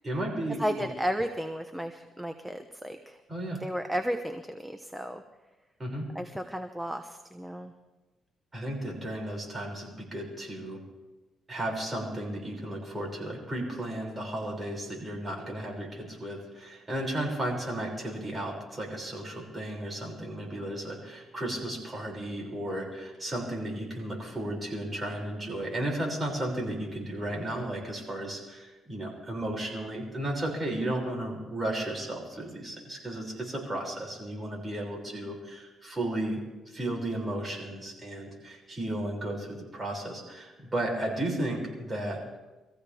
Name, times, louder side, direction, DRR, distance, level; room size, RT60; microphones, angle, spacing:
voice 1, 0.0-0.9 3.3-3.6 5.8-6.0 8.5-10.8 11.5-42.2, right 1 dB, 25° right, -1 dB, 6.2 m, -34 dB
voice 2, 0.6-3.2 3.6-5.2 6.1-7.7, equal, 5° right, 6 dB, 0.9 m, -33 dB
24.5 x 15.0 x 3.5 m, 1.1 s
cardioid pair, 90°, 0 cm